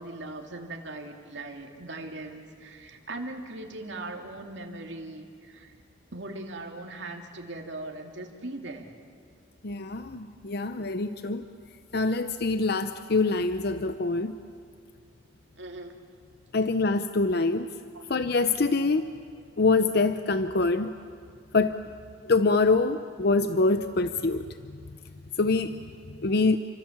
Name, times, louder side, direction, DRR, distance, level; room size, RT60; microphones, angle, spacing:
voice 1, 0.0-5.8 6.1-8.9 15.6-15.9 17.9-18.0, right 2 dB, 70° right, 2 dB, 2.5 m, -39 dB
voice 2, 9.6-11.4 11.9-14.3 16.5-17.7 18.1-19.1 19.6-20.9 21.5-21.8 22.2-24.5 25.4-25.8 26.2-26.6, left 3 dB, 55° left, 10 dB, 0.8 m, -25 dB
30.0 x 25.0 x 7.3 m, 2.3 s
head